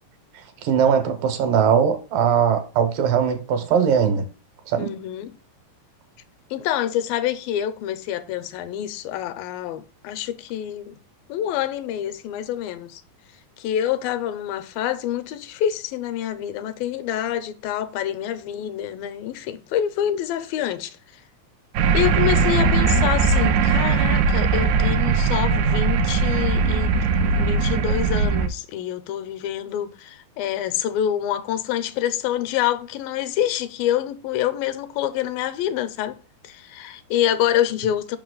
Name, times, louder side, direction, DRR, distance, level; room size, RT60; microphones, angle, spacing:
voice 1, 0.6-4.2 4.7-4.9, right 7 dB, 75° right, 2.5 m, -20 dB
voice 2, 4.8-5.3 6.5-11.0 11.3-13.0 13.6-21.0 21.9-27.0 27.2-36.2 36.4-38.2, left 11 dB, 85° left, 2.4 m, -26 dB
sound 1, 21.7-28.5, right 5 dB, 90° right, 1.7 m, -20 dB
5.8 x 5.6 x 3.8 m
omnidirectional pair, 4.1 m